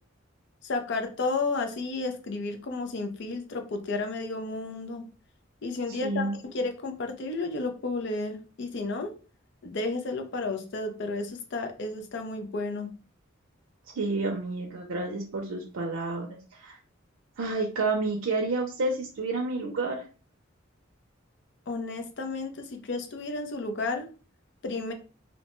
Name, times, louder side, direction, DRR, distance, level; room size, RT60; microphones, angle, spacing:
voice 1, 0.6-5.0 5.6-9.1 9.6-12.9 21.7-24.1 24.6-24.9, left 3 dB, 60° left, 5 dB, 0.5 m, -32 dB
voice 2, 5.9-6.4 14.0-16.8 17.4-20.0, right 3 dB, 85° right, 1 dB, 0.5 m, -30 dB
2.7 x 2.1 x 2.9 m, 0.36 s
head